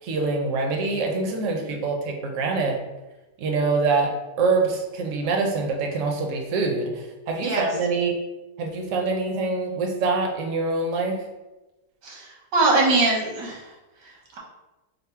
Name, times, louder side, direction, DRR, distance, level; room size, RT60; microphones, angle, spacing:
voice 1, 0.0-2.8 3.4-8.1 8.6-11.2, right 3 dB, 65° right, 2 dB, 0.8 m, -25 dB
voice 2, 12.0-13.6, right 2 dB, 85° right, -2 dB, 1.6 m, -22 dB
4.0 x 2.0 x 4.3 m, 1.1 s
omnidirectional pair, 1.8 m